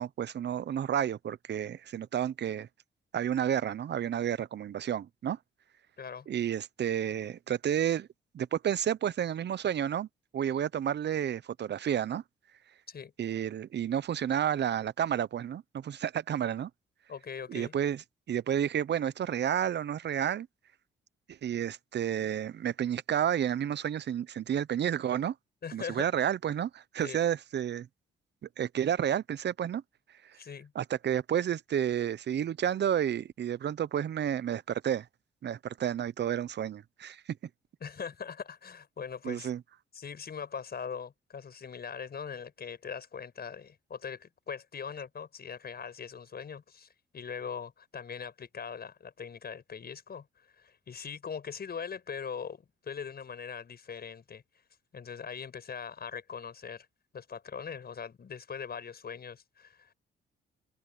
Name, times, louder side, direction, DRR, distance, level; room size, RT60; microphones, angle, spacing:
voice 1, 0.0-2.7 3.1-5.4 6.3-8.1 8.3-10.1 10.3-12.2 13.2-16.7 17.5-18.0 18.3-20.5 21.3-25.3 25.7-27.9 28.6-29.8 30.2-30.4 30.7-35.1 35.4-37.2 39.2-39.6, right 9 dB, 60° right, 1.0 m, -31 dB
voice 2, 17.1-17.8 25.6-26.1 27.0-27.2 30.4-30.7 37.8-39.5 39.9-46.9 47.1-54.4 54.9-56.9 57.1-59.9, left 6 dB, 50° left, 5.6 m, -41 dB
supercardioid pair, 55°, 21 cm